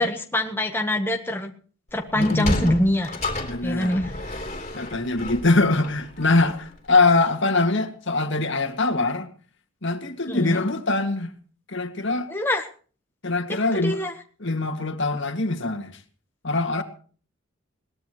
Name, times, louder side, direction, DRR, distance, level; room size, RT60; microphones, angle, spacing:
voice 1, 0.0-1.5 1.9-3.1 3.6-4.1 10.3-10.6 12.3-12.7 13.5-14.1, left 1 dB, 10° left, 1.1 m, -24 dB
voice 2, 2.1-2.8 3.4-4.0 4.7-9.3 9.8-11.3 11.7-12.3 13.2-14.0 14.4-15.9 16.4-16.8, left 3 dB, 55° left, 2.0 m, -23 dB
Sliding door, 2.1-6.7, left 1 dB, 30° left, 3.3 m, -31 dB
21.5 x 18.0 x 3.1 m
head